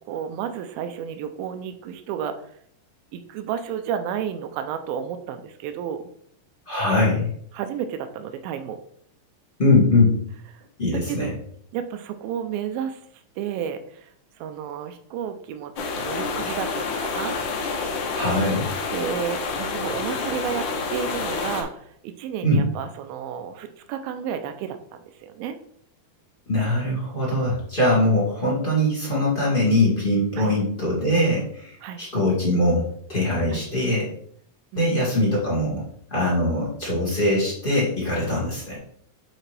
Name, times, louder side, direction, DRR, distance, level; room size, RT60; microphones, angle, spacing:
voice 1, 0.1-2.5 3.1-6.1 7.5-8.8 11.1-11.4 11.7-13.0 13.4-14.1 14.4-17.4 18.9-25.6 30.4-30.5 31.8-32.0 33.5-33.6 34.7-35.0, right 8 dB, 90° right, 8 dB, 2.4 m, -32 dB
voice 2, 6.6-7.3 9.6-10.2 10.8-11.3 18.1-18.7 22.4-22.7 26.5-32.8 33.1-34.1 34.7-35.8 36.1-38.8, left 1 dB, 20° left, -6 dB, 1.5 m, -22 dB
sound 1, 15.8-21.6, left 4 dB, 70° left, 2.3 m, -28 dB
7.4 x 4.4 x 3.2 m, 0.65 s
omnidirectional pair, 4.1 m